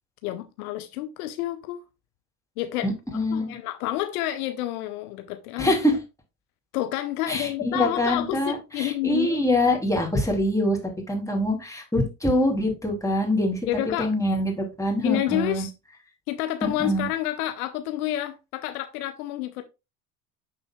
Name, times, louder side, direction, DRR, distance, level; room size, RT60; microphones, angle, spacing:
voice 1, 0.2-1.8 2.6-2.9 3.3-5.7 6.7-9.5 13.7-14.1 15.0-15.7 16.3-19.6, left 13 dB, 70° left, 0.7 m, -29 dB
voice 2, 2.8-3.6 5.6-6.0 7.3-10.8 11.1-13.6 14.0-15.7 16.6-17.1, left 1 dB, 5° left, 2.7 m, -24 dB
11.0 x 4.0 x 2.2 m
hypercardioid pair, 60°, 45 cm